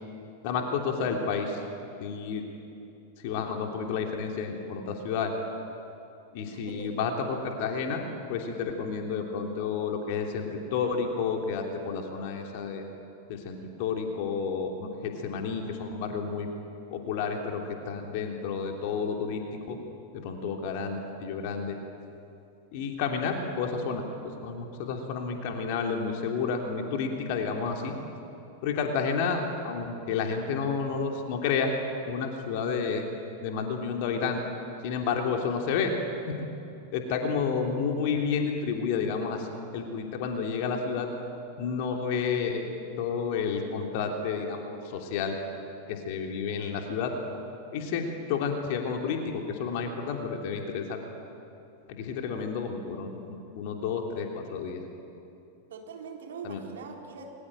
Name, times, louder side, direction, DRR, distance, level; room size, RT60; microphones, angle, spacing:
voice 1, 0.4-1.6 2.0-2.4 3.2-5.3 6.3-8.0 8.3-12.8 13.3-16.5 16.9-19.4 19.7-19.8 20.1-21.8 22.7-24.0 24.4-27.9 28.6-31.7 32.0-33.1 33.4-34.4 34.8-35.9 36.3-36.4 36.9-39.5 39.7-41.1 41.6-42.7 43.0-45.4 45.9-47.1 47.7-51.0 51.9-54.8 56.4-56.6, left 5 dB, 50° left, 3 dB, 3.2 m, -30 dB
voice 2, 6.5-6.9 52.2-52.5 55.7-57.3, right 5 dB, 60° right, 1 dB, 4.1 m, -42 dB
30.0 x 22.0 x 9.1 m, 2.8 s
figure-of-eight pair, 90°, 0 cm